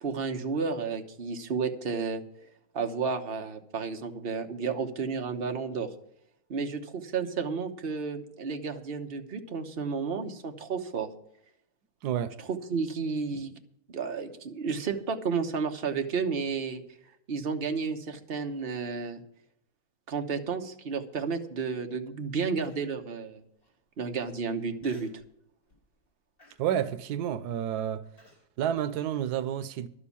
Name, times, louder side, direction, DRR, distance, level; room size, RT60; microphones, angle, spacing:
voice 1, 0.0-2.2 2.7-5.9 6.5-11.1 12.4-13.5 13.9-16.8 17.3-19.2 20.1-23.4 24.0-25.2, right 5 dB, 40° right, 1.2 m, -32 dB
voice 2, 12.0-12.3 26.6-28.0 28.6-29.9, right 10 dB, 90° right, 1.3 m, -30 dB
Human voice, 22.6-23.0 23.6-23.7 24.8-25.3 25.7-26.0 26.4-28.5, left 1 dB, 70° left, 4.5 m, -57 dB
12.0 x 7.2 x 8.4 m
omnidirectional pair, 1.6 m